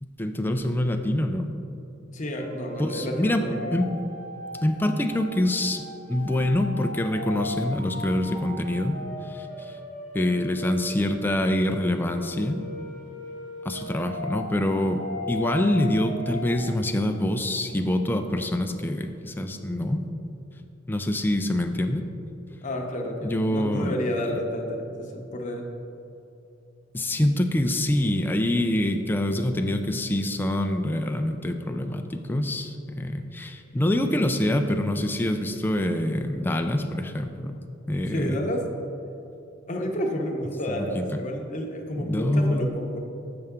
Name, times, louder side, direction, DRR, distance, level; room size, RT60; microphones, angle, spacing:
voice 1, 0.0-1.5 2.8-3.4 3.7-3.9 4.6-5.8 6.1-9.0 9.2-9.8 10.1-12.6 13.7-20.0 20.9-22.1 23.2-23.9 26.9-37.6 37.9-38.4 40.7-41.2 42.0-42.7, left 1 dB, 10° left, 5 dB, 0.3 m, -25 dB
voice 2, 2.1-3.8 22.6-25.7 38.1-38.6 39.7-43.0, equal, 40° left, 2 dB, 0.8 m, -30 dB
sound 1, 2.4-16.7, left 1 dB, 35° right, 1.2 m, -38 dB
7.7 x 5.6 x 3.6 m, 2.8 s
head